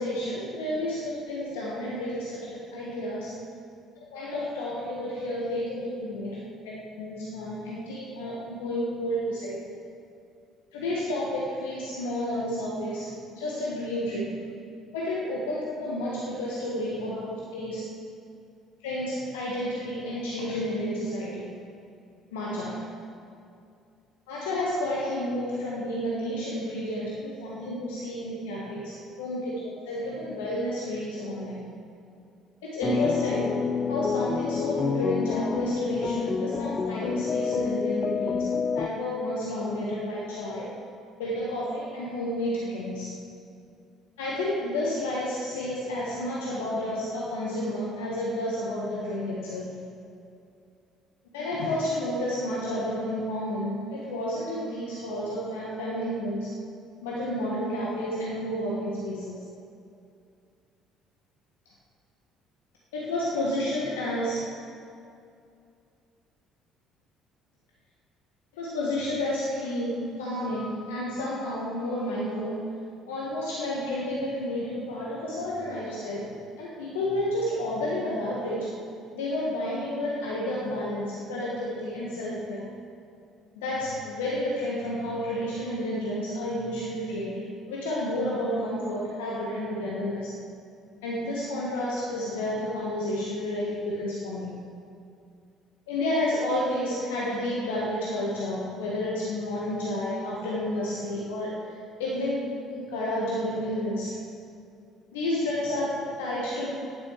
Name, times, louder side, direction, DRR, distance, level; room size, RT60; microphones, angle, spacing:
voice 1, 0.0-3.4 4.0-9.8 10.7-14.4 14.9-17.8 18.8-21.5 22.3-22.9 24.3-31.6 32.6-33.6 33.9-40.8 41.2-43.2 44.2-49.8 51.3-56.5 57.0-59.4 62.9-64.5 68.5-72.7 73.1-78.8 79.1-82.7 83.5-90.3 91.0-94.5 95.9-104.2 105.1-106.7, left 1 dB, 75° left, -5 dB, 1.5 m, -31 dB
sound 1, 32.8-38.9, left 5 dB, 40° left, 0.5 m, -28 dB
9.9 x 8.3 x 7.3 m, 2.5 s
hypercardioid pair, 55°, 0 cm